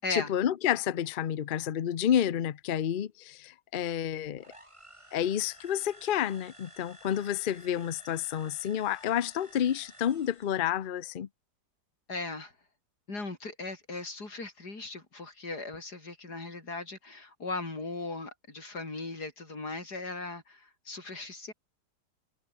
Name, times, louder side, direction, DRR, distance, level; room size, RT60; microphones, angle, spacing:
voice 1, 0.1-4.4 5.1-11.3, left 10 dB, 90° left, 0.4 m, -30 dB
sound 1, 4.4-10.7, right 1 dB, 15° right, 5.2 m, -53 dB
voice 2, 12.1-12.5 13.1-21.5, left 3 dB, 60° left, 5.3 m, -38 dB
omnidirectional pair, 1.9 m